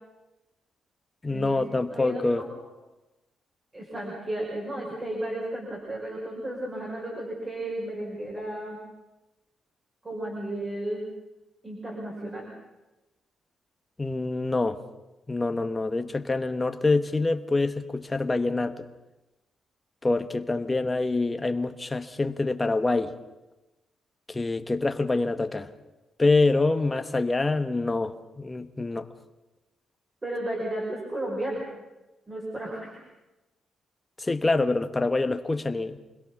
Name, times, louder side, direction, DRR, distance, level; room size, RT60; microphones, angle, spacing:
voice 1, 1.2-2.4 14.0-14.8 15.3-18.9 20.0-23.1 24.3-25.7 26.2-29.0 34.2-36.0, left 3 dB, 15° left, 8 dB, 1.1 m, -26 dB
voice 2, 1.9-2.5 3.7-8.8 10.0-11.0 11.6-12.4 30.2-31.6 32.3-33.0, right 1 dB, 20° right, -3 dB, 5.2 m, -33 dB
27.0 x 21.5 x 6.0 m, 1.1 s
wide cardioid pair, 160°, 0 cm